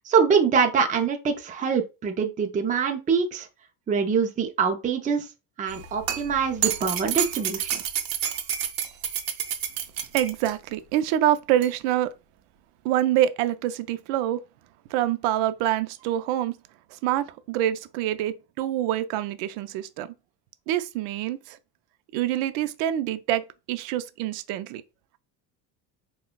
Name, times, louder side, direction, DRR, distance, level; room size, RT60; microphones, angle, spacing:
voice 1, 0.0-3.5 3.9-5.3 5.6-7.8, right 6 dB, 20° right, 0.5 m, -24 dB
sound 1, 5.7-10.5 11.6-11.7, right 10 dB, 55° right, 0.8 m, -29 dB
voice 2, 10.1-12.1 12.8-14.4 14.9-16.6 16.9-20.1 20.7-21.6 22.1-24.8, right 12 dB, 85° right, 0.6 m, -26 dB
5.8 x 2.3 x 2.2 m
cardioid pair, 120°, 41 cm